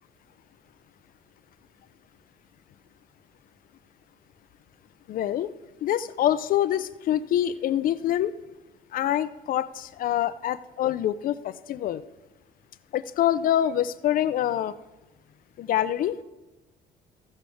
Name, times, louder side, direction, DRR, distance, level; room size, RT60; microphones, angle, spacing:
voice 1, 5.1-5.5 5.8-8.3 8.9-12.0 12.9-14.7 15.6-16.2, left 11 dB, 55° left, 14 dB, 0.4 m, -25 dB
16.0 x 6.5 x 3.5 m, 1.0 s
cardioid pair, 110°, 17 cm